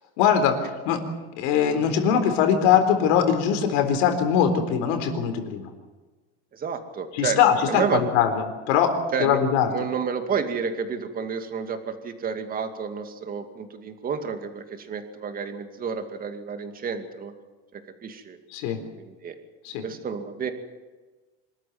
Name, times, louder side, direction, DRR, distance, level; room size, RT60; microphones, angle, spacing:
voice 1, 0.2-1.0 1.4-5.7 7.1-8.9 9.2-9.7 18.5-18.8 19.6-19.8, left 8 dB, 70° left, 6 dB, 4.1 m, -21 dB
voice 2, 6.5-7.4 7.7-8.0 9.1-9.4 9.7-17.3 17.7-18.4 19.0-19.4 19.8-20.5, right 6 dB, 25° right, 7 dB, 2.4 m, -30 dB
25.5 x 13.5 x 9.5 m, 1.3 s
supercardioid pair, 145°, 33 cm